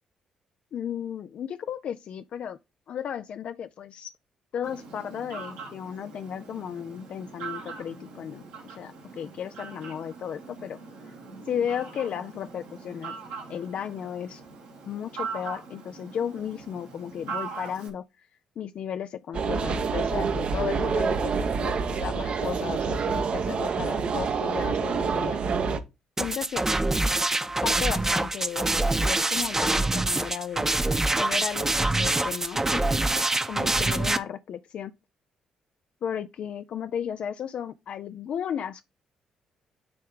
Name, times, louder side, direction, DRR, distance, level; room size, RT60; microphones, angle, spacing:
voice 1, 0.7-2.6 2.9-4.1 4.5-10.8 11.5-13.1 13.5-14.4 14.9-18.3 18.6-25.4 26.2-26.7 27.6-30.7 31.2-33.0 33.5-34.9 36.0-38.8, left 8 dB, 60° left, 0.4 m, -34 dB
Fowl, 4.6-17.9, right 5 dB, 80° right, 2.0 m, -41 dB
sound 1, 19.3-25.8, right 5 dB, 55° right, 0.8 m, -27 dB
sound 2, 26.2-34.2, right 2 dB, 20° right, 0.8 m, -25 dB
9.4 x 3.2 x 3.7 m
hypercardioid pair, 45°, 2 cm